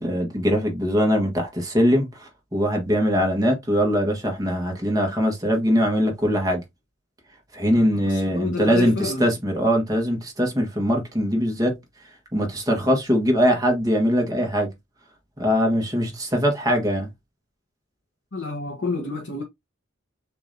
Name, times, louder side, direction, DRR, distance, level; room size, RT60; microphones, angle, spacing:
voice 1, 0.0-6.6 7.5-11.8 12.3-14.7 15.4-17.1, equal, 20° right, 1.3 m, -22 dB
voice 2, 7.7-9.3 18.3-19.4, left 3 dB, 65° left, 1.0 m, -29 dB
6.7 x 2.7 x 2.6 m
head